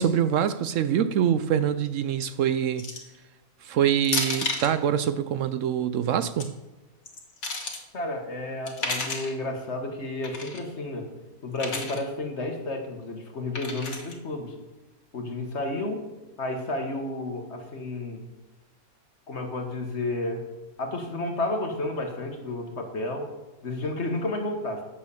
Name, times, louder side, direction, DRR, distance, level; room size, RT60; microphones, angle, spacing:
voice 1, 0.0-2.8 3.7-6.5, right 9 dB, 70° right, 13 dB, 0.9 m, -24 dB
sound 1, 2.8-3.2 4.0-4.7 6.1-6.4 7.0-7.8 8.7-9.3 10.2-10.6 11.6-12.0 13.5-14.1, left 3 dB, 80° left, 1.9 m, -32 dB
voice 2, 7.9-11.1 11.4-14.5 15.1-16.0 16.4-18.2 19.3-20.4 20.8-23.3 23.6-24.8, left 2 dB, 50° left, 3 dB, 1.8 m, -31 dB
9.3 x 6.4 x 7.1 m, 1.1 s
omnidirectional pair, 1.5 m